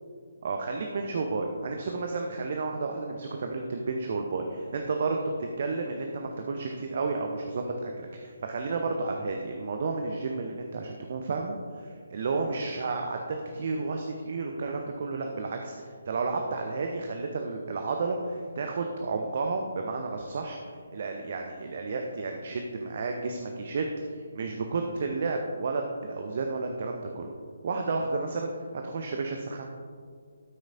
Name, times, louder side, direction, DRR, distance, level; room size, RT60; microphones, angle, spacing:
voice 1, 0.4-5.2 5.6-13.2 13.5-27.3 27.6-28.5 28.8-29.7, right 3 dB, 45° right, 3 dB, 0.6 m, -32 dB
12.0 x 6.2 x 2.5 m, 2.1 s
figure-of-eight pair, 140°, 0 cm